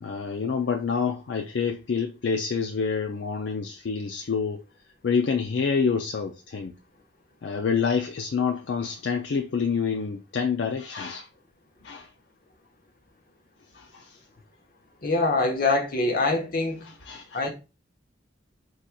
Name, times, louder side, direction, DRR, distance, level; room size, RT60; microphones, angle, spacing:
voice 1, 0.0-4.6 5.0-6.7 7.4-11.3 11.8-12.1 13.7-14.2 17.1-17.4, left 5 dB, 70° left, 0.4 m, -27 dB
voice 2, 15.0-16.9 17.3-17.5, left 2 dB, 50° left, 1.1 m, -24 dB
4.7 x 4.2 x 2.3 m
head